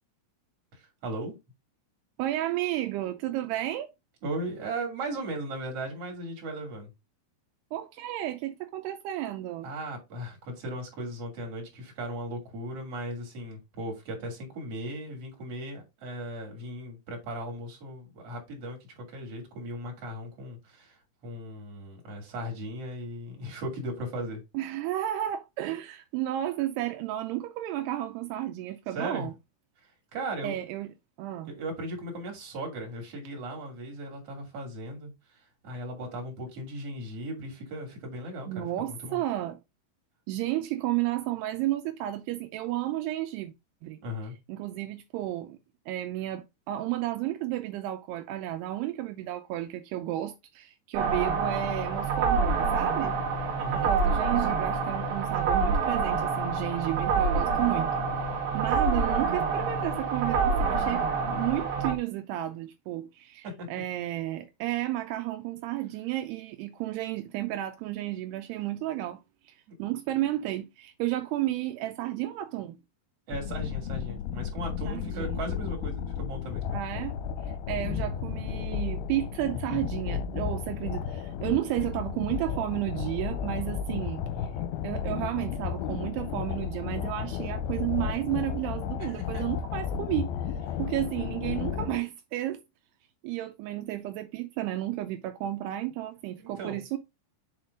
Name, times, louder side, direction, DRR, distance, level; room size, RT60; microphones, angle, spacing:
voice 1, 0.7-1.3 4.2-6.9 9.6-24.4 28.9-29.3 29.8-30.6 31.5-39.2 44.0-44.3 53.6-53.9 63.6-63.7 69.7-69.8 73.3-76.6 89.0-89.4 96.4-96.8, right 1 dB, 40° right, 3.2 m, -37 dB
voice 2, 2.2-3.9 7.7-9.7 24.5-29.3 30.4-30.9 31.2-31.5 38.5-39.6 40.3-43.5 43.8-44.0 44.5-45.6 45.9-53.2 53.7-57.9 58.5-69.5 69.8-72.8 74.9-75.4 76.7-84.5 84.8-90.3 90.8-92.6 93.2-97.0, right 14 dB, 85° right, 2.6 m, -32 dB
sound 1, 50.9-61.9, right 5 dB, 60° right, 1.4 m, -27 dB
sound 2, 73.3-92.0, left 8 dB, 80° left, 2.3 m, -33 dB
7.2 x 4.3 x 3.6 m
omnidirectional pair, 4.7 m